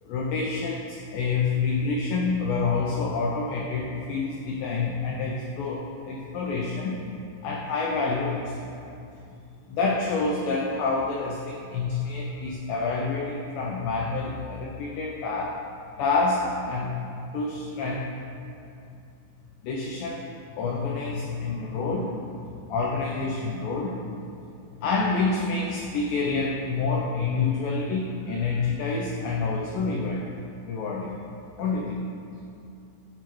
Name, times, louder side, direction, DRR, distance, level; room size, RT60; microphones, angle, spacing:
voice 1, 0.0-7.0 7.4-8.7 9.7-15.6 16.0-16.9 17.3-18.1 19.6-20.3 20.6-24.0 24.8-30.3 30.7-31.2 31.6-32.1, left 4 dB, 90° left, -2 dB, 2.0 m, -28 dB
11.0 x 4.6 x 3.1 m, 2.6 s
omnidirectional pair, 4.7 m